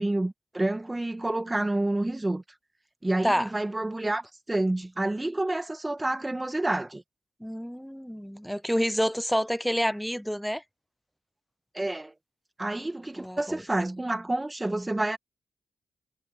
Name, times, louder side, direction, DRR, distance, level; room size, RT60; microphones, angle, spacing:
voice 1, 0.0-2.4 3.0-7.0 11.7-12.1 12.6-15.2, right 2 dB, 20° right, 2.1 m, -29 dB
voice 2, 7.4-10.6 13.2-13.6, equal, ahead, 0.7 m, -28 dB
cardioid pair, 60°, 0 cm